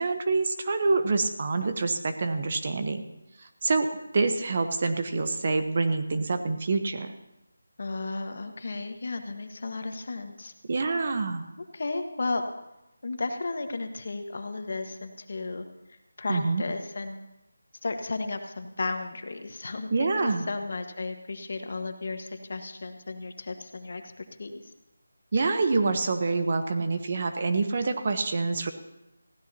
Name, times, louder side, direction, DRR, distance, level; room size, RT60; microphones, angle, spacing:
voice 1, 0.0-3.0 3.4-3.9 4.1-7.1 10.7-11.4 16.3-16.6 19.9-20.5 25.3-28.7, right 3 dB, 35° right, 8 dB, 0.9 m, -26 dB
voice 2, 7.8-10.5 11.7-12.4 13.0-15.6 16.2-17.3 17.8-24.7, left 3 dB, 50° left, 6 dB, 1.4 m, -34 dB
20.5 x 16.0 x 2.8 m, 0.94 s
figure-of-eight pair, 175°, 0 cm